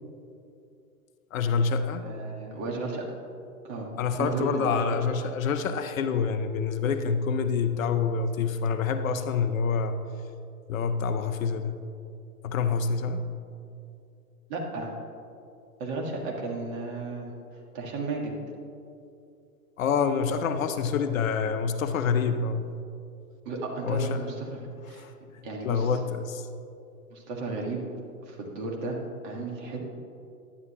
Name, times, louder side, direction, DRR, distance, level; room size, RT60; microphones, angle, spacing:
voice 1, 1.3-2.0 4.0-10.0 10.7-11.8 12.4-13.3 16.2-16.3 19.8-22.8 23.8-24.2 24.9-25.1 25.6-26.5, left 5 dB, 60° left, 9 dB, 0.7 m, -27 dB
voice 2, 2.0-3.0 3.6-3.9 4.1-5.0 14.5-15.0 15.8-17.3 17.7-18.3 23.5-24.6 24.9-25.1 25.4-25.9 27.1-27.8 28.2-29.0 29.2-29.8, right 3 dB, 40° right, -1 dB, 1.8 m, -33 dB
11.0 x 9.3 x 3.0 m, 2.6 s
figure-of-eight pair, 105°, 46 cm